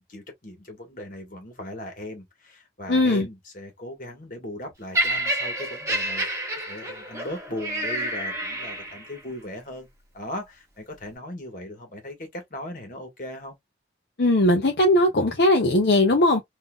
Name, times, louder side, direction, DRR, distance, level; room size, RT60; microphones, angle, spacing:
voice 1, 0.1-13.5, left 1 dB, 45° left, 1.5 m, -38 dB
voice 2, 2.9-3.3 14.2-16.4, left 1 dB, 65° left, 0.7 m, -19 dB
Laughter, 4.9-9.2 10.0-10.2, right 1 dB, 15° right, 1.2 m, -29 dB
3.7 x 2.7 x 2.4 m
head